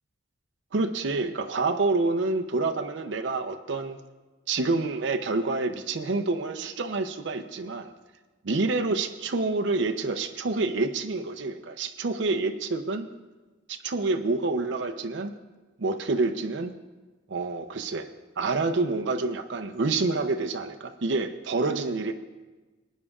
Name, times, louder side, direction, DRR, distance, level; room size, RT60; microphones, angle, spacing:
voice 1, 0.7-4.0 4.5-7.9 8.4-13.1 13.7-15.3 15.8-16.7 17.3-18.1 18.4-22.1, right 3 dB, 60° right, 5 dB, 0.6 m, -27 dB
21.0 x 9.7 x 2.4 m, 1.2 s
head